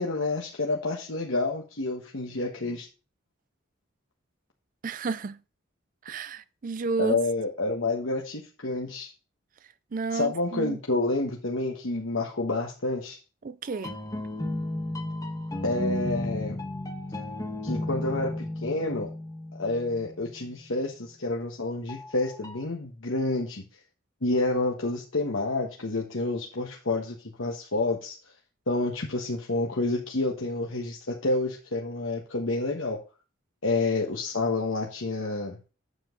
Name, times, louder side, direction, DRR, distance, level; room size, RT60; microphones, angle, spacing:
voice 1, 0.0-2.9 7.0-9.1 10.1-13.2 15.6-16.6 17.6-19.1 19.6-23.6 24.2-28.2 28.7-33.0 33.6-35.6, left 2 dB, 80° left, 1.5 m, -29 dB
voice 2, 4.8-5.4 6.0-7.2 9.9-10.8 13.4-13.9, right 4 dB, 45° right, 0.4 m, -31 dB
sound 1, 13.7-20.4 21.9-22.6, left 1 dB, 20° left, 1.2 m, -34 dB
9.1 x 7.1 x 3.9 m
head